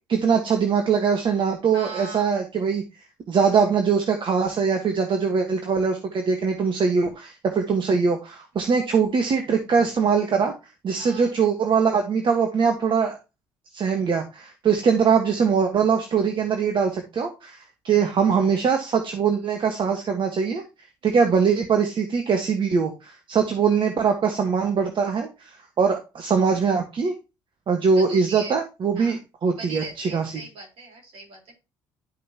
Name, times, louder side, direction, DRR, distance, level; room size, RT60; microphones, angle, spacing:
voice 1, 0.1-2.8 3.3-10.5 10.8-13.2 13.7-20.6 21.0-27.1 27.7-30.3, right 6 dB, 50° right, 5 dB, 1.5 m, -22 dB
voice 2, 1.7-2.3 8.6-8.7 11.0-11.4 21.1-21.2 27.8-28.5 29.0-29.2 29.6-31.6, right 3 dB, 65° right, 0 dB, 4.2 m, -40 dB
12.0 x 5.4 x 2.9 m, 0.28 s
hypercardioid pair, 65°, 11 cm